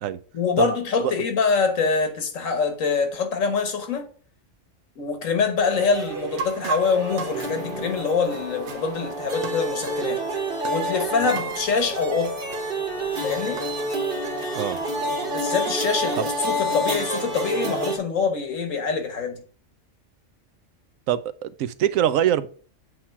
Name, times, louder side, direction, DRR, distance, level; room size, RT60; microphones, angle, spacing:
voice 1, 0.3-4.1 5.0-10.2 10.6-12.4 13.2-13.7 15.3-19.4, left 5 dB, 85° left, 1.5 m, -25 dB
sound 1, 5.6-18.0, right 1 dB, 45° right, 1.5 m, -29 dB
sound 2, 6.4-9.0 9.4-10.1 10.6-10.9 11.4-11.6 12.5-12.7 12.9-13.0 13.6-13.8 14.4-14.5 15.1-15.2 15.6-16.1 16.7-17.4, right 4 dB, 65° right, 1.0 m, -35 dB
voice 2, 21.1-22.5, right 10 dB, 90° right, 1.0 m, -23 dB
7.8 x 3.0 x 5.7 m
omnidirectional pair, 1.3 m